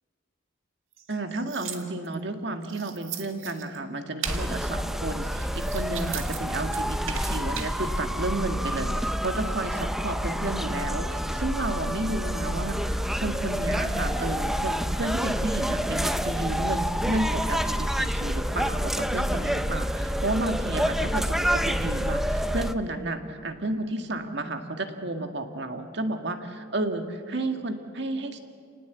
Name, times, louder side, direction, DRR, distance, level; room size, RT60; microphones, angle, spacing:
sound 1, 0.9-2.2 2.6-3.8 4.2-4.4 5.2-6.4 6.7-7.7, right 9 dB, 90° right, 1.9 m, -38 dB
voice 1, 1.1-28.4, right 2 dB, 60° right, 5 dB, 1.9 m, -32 dB
sound 2, 4.2-22.7, equal, ahead, 0.6 m, -28 dB
29.5 x 19.0 x 8.2 m, 2.3 s
head